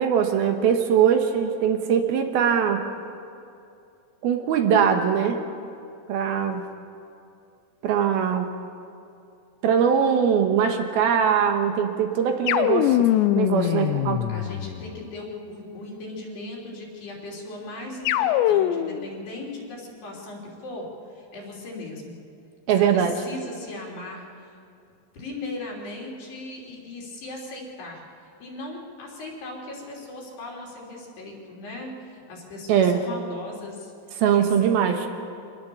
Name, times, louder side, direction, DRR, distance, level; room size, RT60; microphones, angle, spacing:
voice 1, 0.0-2.8 4.2-5.4 6.1-6.7 7.8-8.5 9.6-13.1 13.3-14.2 22.7-23.1 32.7-33.0 34.2-35.0, right 8 dB, 70° right, 5 dB, 2.9 m, -21 dB
sound 1, 12.5-15.0 18.0-19.1, left 13 dB, 90° left, 2.9 m, -22 dB
voice 2, 13.6-14.0 14.3-22.2 22.8-24.6 25.1-28.0 28.4-35.1, left 2 dB, 70° left, -3 dB, 5.4 m, -38 dB
25.5 x 19.0 x 7.0 m, 2.6 s
omnidirectional pair, 4.9 m